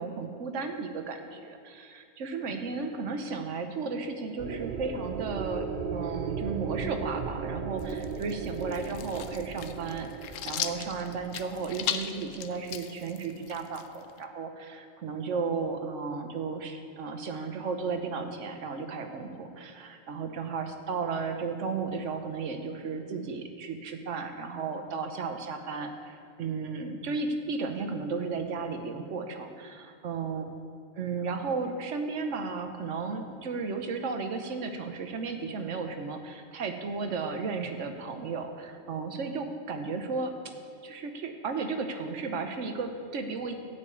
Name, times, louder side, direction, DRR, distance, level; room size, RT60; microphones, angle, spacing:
voice 1, 0.0-30.4 31.0-40.3 40.8-43.5, right 4 dB, 75° right, 6 dB, 1.3 m, -34 dB
sound 1, 4.4-12.5, right 5 dB, 50° right, 0.6 m, -37 dB
sound 2, 7.8-14.2, left 9 dB, 90° left, 1.0 m, -38 dB
13.0 x 5.2 x 8.5 m, 2.4 s
omnidirectional pair, 1.3 m